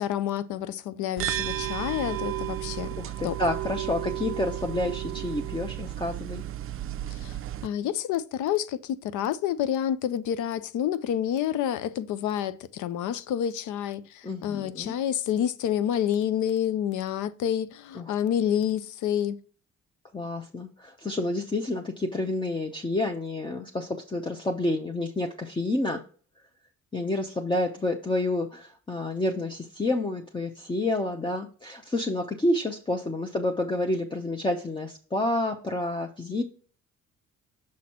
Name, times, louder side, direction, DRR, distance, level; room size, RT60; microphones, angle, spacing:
voice 1, 0.0-2.9 3.2-3.4 7.1-7.4 7.6-19.4, left 10 dB, 80° left, 0.6 m, -28 dB
sound 1, 1.2-7.7, right 13 dB, 45° right, 0.4 m, -33 dB
voice 2, 3.0-6.4 14.2-14.9 17.9-18.1 20.1-26.0 26.9-36.4, left 2 dB, 15° left, 0.7 m, -29 dB
6.3 x 4.1 x 4.3 m
cardioid pair, 90°, 30 cm